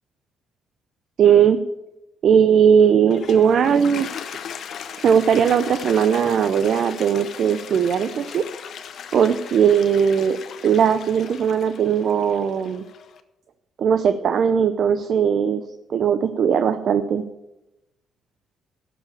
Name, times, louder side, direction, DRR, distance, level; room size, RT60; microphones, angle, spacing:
voice 1, 1.2-1.6 2.2-4.1 5.0-8.4 9.1-10.4 10.6-12.8 13.8-15.6 15.9-17.2, right 7 dB, 60° right, 10 dB, 0.6 m, -18 dB
Toilet flush, 2.9-13.2, left 8 dB, 65° left, 0.8 m, -38 dB
13.0 x 4.9 x 8.7 m, 0.97 s
cardioid pair, 85°, 0 cm